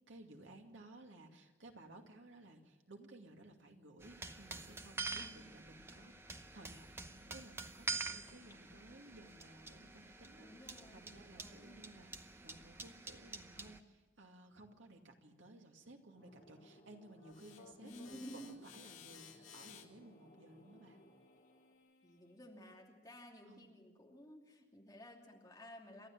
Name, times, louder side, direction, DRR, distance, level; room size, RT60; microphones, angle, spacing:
voice 1, 0.1-21.0 23.4-23.7, right 2 dB, 75° right, 3 dB, 2.3 m, -58 dB
sound 1, 4.0-13.8, right 4 dB, 10° right, 0.8 m, -47 dB
voice 2, 5.1-5.5 10.4-11.9 17.8-18.5 22.0-26.1, equal, 20° left, -1 dB, 2.8 m, -54 dB
sound 2, 16.1-21.7, equal, 35° left, 3.5 m, -64 dB
sound 3, 17.2-22.4, left 8 dB, 85° left, 2.5 m, -59 dB
29.0 x 13.0 x 7.4 m, 1.2 s
head